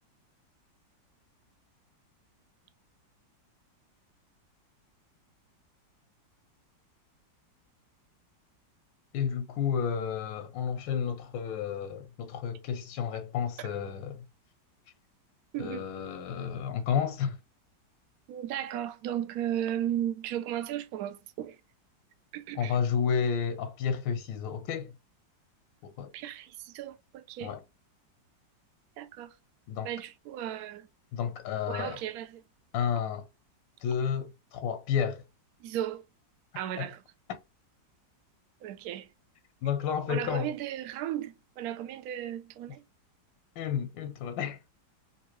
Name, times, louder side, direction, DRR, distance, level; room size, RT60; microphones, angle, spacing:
voice 1, 9.1-14.2 15.6-17.4 22.6-24.9 25.8-26.1 27.4-27.6 29.7-29.9 31.1-32.0 32.7-33.3 33.8-35.2 36.8-36.9 37.3-37.4 39.6-40.5 43.6-44.6, left 7 dB, 85° left, 1.3 m, -31 dB
voice 2, 18.3-21.6 22.3-22.8 26.1-27.6 29.0-29.4 29.8-30.9 31.7-32.4 35.6-36.1 36.6-37.0 38.6-39.1 40.1-42.8, right 11 dB, 70° right, 0.9 m, -35 dB
3.6 x 2.6 x 3.0 m
omnidirectional pair, 2.0 m